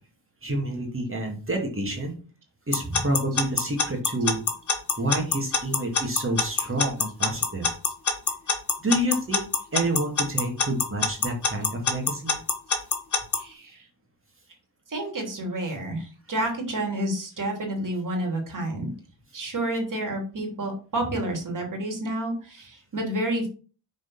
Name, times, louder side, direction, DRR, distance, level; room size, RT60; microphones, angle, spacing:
voice 1, 0.4-2.2 2.7-4.4 5.0-7.7 8.8-9.4 9.7-12.4, right 1 dB, 30° right, 1 dB, 2.5 m, -28 dB
Alarm / Clock, 2.7-13.4, left 5 dB, 40° left, 1.5 m, -23 dB
voice 2, 13.4-13.8 14.9-18.9 19.3-23.5, right 1 dB, 45° right, 2 dB, 3.2 m, -29 dB
6.5 x 4.9 x 5.7 m, 0.37 s
cardioid pair, 95°, 44 cm